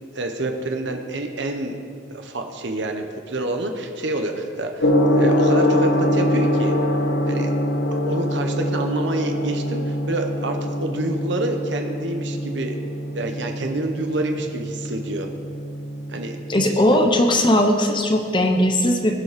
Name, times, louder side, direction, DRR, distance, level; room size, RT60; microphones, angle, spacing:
voice 1, 0.1-1.8 2.1-6.7 7.2-7.5 7.9-12.8 13.1-15.3 16.1-16.4, right 2 dB, 65° right, 4 dB, 1.2 m, -28 dB
Gong, 4.8-16.8, left 1 dB, 80° left, 1.3 m, -23 dB
voice 2, 16.5-19.1, left 1 dB, 25° left, 4 dB, 0.9 m, -18 dB
20.5 x 6.9 x 5.2 m, 2.3 s
head